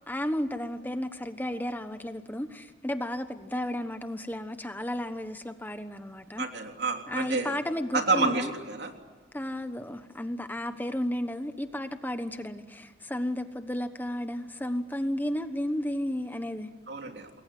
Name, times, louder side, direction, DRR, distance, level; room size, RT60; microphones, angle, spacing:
voice 1, 0.1-6.4 7.1-8.5 9.3-16.7, left 1 dB, 10° left, 9 dB, 1.1 m, -33 dB
voice 2, 6.4-7.6 7.9-8.9 16.9-17.3, right 3 dB, 65° right, 3 dB, 3.4 m, -29 dB
28.0 x 21.5 x 9.4 m, 1.4 s
head